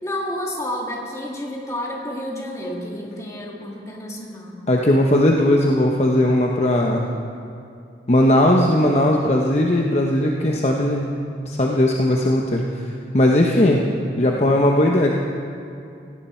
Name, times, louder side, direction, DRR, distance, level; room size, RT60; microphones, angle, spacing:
voice 1, 0.0-4.6, left 1 dB, 20° left, -1 dB, 2.1 m, -30 dB
voice 2, 4.7-7.1 8.1-11.1 11.4-12.9 13.1-13.8 14.2-15.2, left 1 dB, 40° left, 0 dB, 0.9 m, -18 dB
17.5 x 16.5 x 4.4 m, 2.5 s
head